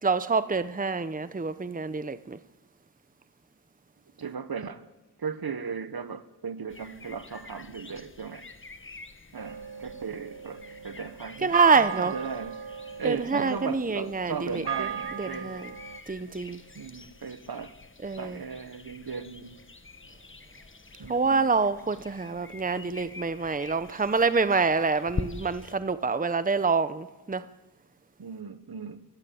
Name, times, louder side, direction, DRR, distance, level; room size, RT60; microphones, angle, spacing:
voice 1, 0.0-2.4 11.4-12.1 13.0-14.9 15.2-15.7 16.1-16.6 18.0-18.4 21.1-27.5, right 4 dB, 20° right, 0.8 m, -26 dB
voice 2, 4.2-4.9 5.2-8.5 9.3-12.6 13.0-15.5 16.7-17.7 18.2-19.6 21.0-21.4 28.2-29.0, right 5 dB, 65° right, 1.4 m, -37 dB
sound 1, 6.7-25.8, left 3 dB, 30° left, 1.3 m, -45 dB
sound 2, 9.4-16.0, right 7 dB, 80° right, 1.2 m, -37 dB
26.5 x 15.0 x 8.6 m
wide cardioid pair, 60°, 40 cm